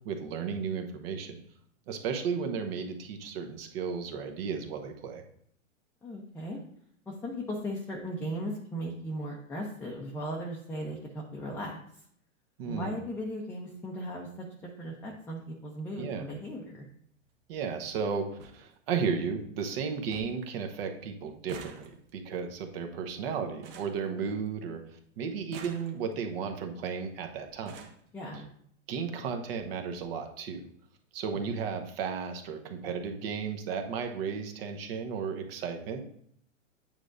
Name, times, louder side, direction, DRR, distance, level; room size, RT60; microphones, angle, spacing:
voice 1, 0.0-1.4 1.9-5.2 12.6-12.9 16.0-16.3 17.5-24.8 25.2-27.8 28.9-30.6 31.1-36.0, right 6 dB, 50° right, 5 dB, 1.0 m, -34 dB
voice 2, 6.0-6.6 7.1-11.8 12.6-14.5 14.8-16.9 28.1-28.5, equal, 5° left, -3 dB, 0.6 m, -37 dB
sound 1, 18.4-18.6 19.0-19.5 19.8-19.9 20.1-20.5 20.8-24.8 25.3-26.3 27.1-27.2 27.5-28.1 29.0-29.1 29.5-29.6 29.9-30.0, right 5 dB, 25° right, 0.8 m, -49 dB
9.2 x 5.1 x 2.5 m, 0.66 s
hypercardioid pair, 125°, 39 cm